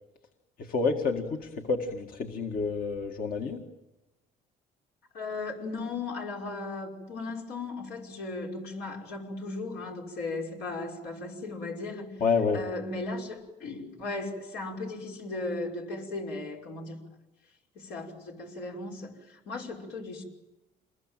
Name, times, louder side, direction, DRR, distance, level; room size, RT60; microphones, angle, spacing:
voice 1, 0.6-3.6 12.2-12.6, left 4 dB, 60° left, 2 dB, 2.0 m, -28 dB
voice 2, 5.1-12.2 12.5-17.0 17.7-20.2, left 3 dB, 85° left, 0 dB, 5.7 m, -36 dB
27.5 x 21.5 x 9.1 m, 1.0 s
cardioid pair, 110°, 17 cm